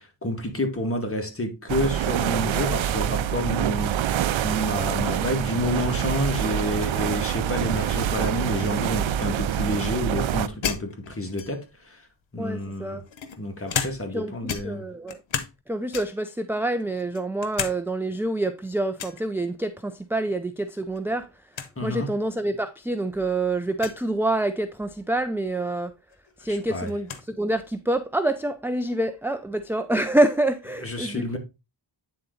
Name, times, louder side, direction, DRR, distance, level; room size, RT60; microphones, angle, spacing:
voice 1, 0.0-12.1 12.3-13.0 13.4-14.9 21.8-22.1 26.4-26.9 30.8-31.4, left 1 dB, 30° left, 2.0 m, -29 dB
sound 1, 1.7-10.5, right 10 dB, 90° right, 0.6 m, -26 dB
sound 2, 10.6-11.8 12.6-14.2 14.5-15.6 15.9-16.3 16.8-17.8 18.1-18.2 19.0-19.2 20.7-21.0 21.3-21.4 21.5-21.7 22.5-22.6 23.7-24.0 25.7-25.8 26.1-27.3, left 7 dB, 80° left, 1.0 m, -33 dB
voice 2, 12.4-13.0 14.1-15.2 15.7-21.5 21.8-25.9 26.4-31.4, right 1 dB, 5° right, 0.5 m, -27 dB
9.1 x 3.9 x 3.9 m
cardioid pair, 65°, 45 cm